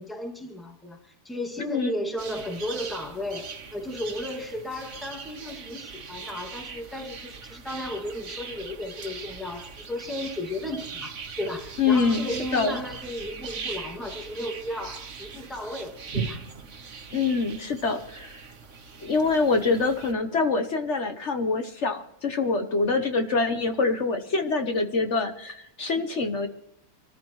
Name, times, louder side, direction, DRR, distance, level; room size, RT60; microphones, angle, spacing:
voice 1, 0.0-16.4, left 1 dB, ahead, 1.9 m, -34 dB
sound 1, 2.2-20.1, right 5 dB, 55° right, 1.4 m, -40 dB
voice 2, 11.8-12.2 12.5-12.8 17.1-18.3 19.0-26.5, left 4 dB, 50° left, 1.3 m, -25 dB
24.5 x 14.0 x 3.1 m
omnidirectional pair, 1.6 m